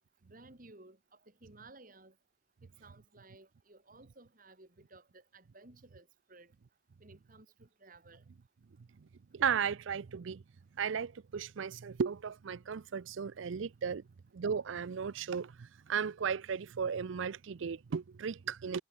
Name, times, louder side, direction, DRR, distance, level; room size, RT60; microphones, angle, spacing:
voice 1, 0.2-1.0 1.2-2.1 2.6-6.5 7.0-8.2, right 2 dB, 40° right, 2.5 m, -57 dB
voice 2, 9.3-10.4 10.8-14.0 14.3-18.8, right 6 dB, 70° right, 0.5 m, -35 dB
head